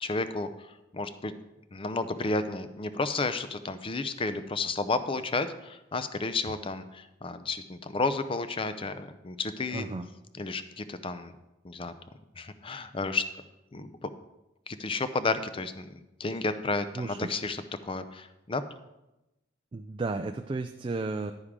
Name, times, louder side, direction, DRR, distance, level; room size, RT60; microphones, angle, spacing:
voice 1, 0.0-1.3 1.7-9.9 10.3-11.3 11.6-11.9 12.4-13.3 13.7-14.1 14.7-18.6, left 3 dB, 30° left, 11 dB, 0.5 m, -32 dB
voice 2, 9.7-10.1 17.0-17.3 19.7-21.3, right 3 dB, 25° right, 7 dB, 0.3 m, -33 dB
9.9 x 9.7 x 3.6 m, 0.95 s
head